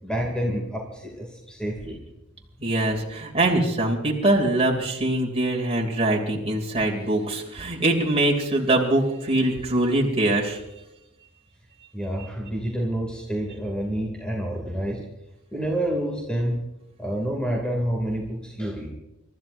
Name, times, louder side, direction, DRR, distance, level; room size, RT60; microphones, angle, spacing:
voice 1, 0.0-2.0 11.9-15.0 15.5-16.6 17.0-18.9, right 1 dB, 5° left, -1 dB, 2.6 m, -28 dB
voice 2, 2.6-10.6, right 1 dB, 30° right, -1 dB, 2.8 m, -23 dB
29.5 x 14.0 x 2.7 m, 0.90 s
head